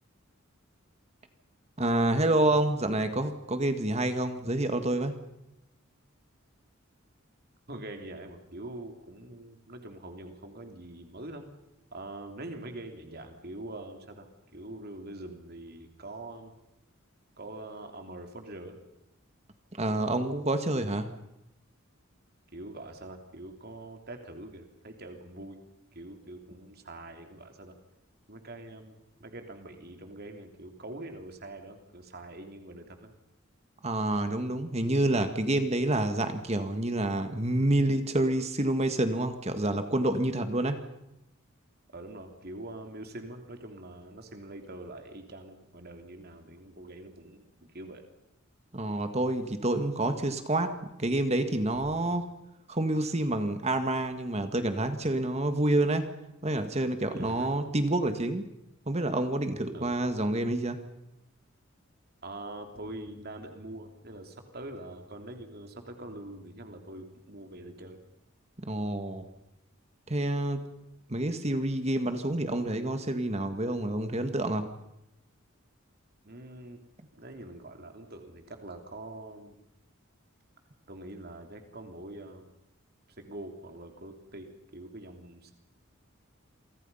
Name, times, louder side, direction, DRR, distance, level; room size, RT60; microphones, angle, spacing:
voice 1, 1.8-5.1 19.8-21.1 33.8-40.8 48.7-52.3 52.7-56.1 56.4-58.4 58.9-60.8 68.7-69.3 70.1-70.6 71.1-74.7, right 1 dB, 30° right, 8 dB, 1.7 m, -28 dB
voice 2, 7.7-11.5 11.9-16.5 17.4-18.8 22.5-25.6 25.9-27.7 28.3-33.1 41.9-47.4 47.7-48.0 51.9-52.0 57.1-57.5 59.7-59.9 62.2-68.0 76.2-76.8 77.2-79.6 80.9-82.5 83.2-85.5, right 1 dB, 50° right, 5 dB, 3.3 m, -44 dB
28.0 x 24.5 x 5.6 m, 0.89 s
head